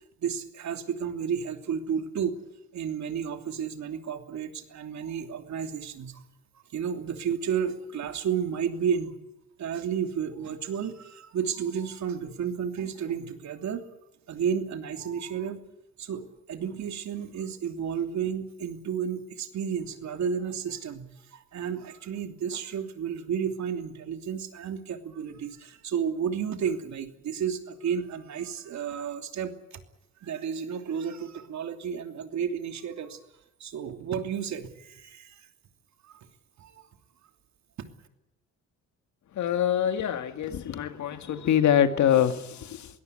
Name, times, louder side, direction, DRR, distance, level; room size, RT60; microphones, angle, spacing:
voice 1, 0.2-6.2 6.7-9.1 9.6-13.9 14.3-15.6 16.0-29.8 30.2-33.2 33.6-35.5 36.0-36.3 36.6-36.8 37.8-37.9, right 7 dB, 65° right, 6 dB, 2.9 m, -32 dB
voice 2, 39.4-42.9, left 10 dB, 70° left, 9 dB, 2.1 m, -24 dB
22.0 x 17.5 x 9.7 m, 0.93 s
cardioid pair, 90°, 30 cm